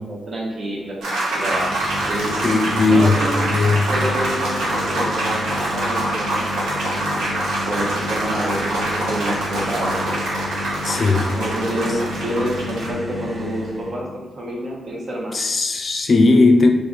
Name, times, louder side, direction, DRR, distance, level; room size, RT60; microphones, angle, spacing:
voice 1, 0.0-1.7 2.1-2.4 2.9-3.3 3.9-7.3 7.6-10.2 11.3-14.0 14.4-15.4, right 1 dB, 55° right, -2 dB, 1.0 m, -28 dB
sound 1, 1.0-12.9, right 1 dB, 85° right, 0.9 m, -25 dB
sound 2, 1.4-14.0, left 2 dB, 25° right, 0.5 m, -31 dB
voice 2, 2.4-3.2 3.5-3.9 10.8-11.3 15.3-16.7, left 3 dB, 45° left, 5 dB, 0.4 m, -16 dB
3.2 x 2.5 x 4.0 m, 1.1 s
cardioid pair, 70°, 0 cm